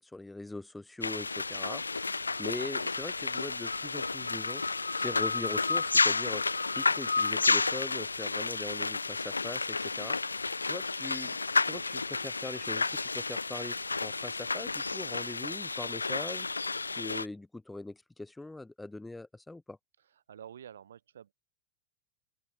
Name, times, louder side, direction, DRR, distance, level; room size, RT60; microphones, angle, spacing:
voice 1, 0.0-4.6 5.0-6.4 6.7-10.2 10.6-11.4 11.6-16.5 16.9-19.8, left 2 dB, 5° left, 0.6 m, -41 dB
sound 1, 1.0-17.3, left 3 dB, 80° left, 0.4 m, -31 dB
voice 2, 20.1-21.3, right 9 dB, 65° right, 2.6 m, -49 dB
open air
figure-of-eight pair, 90°, 0 cm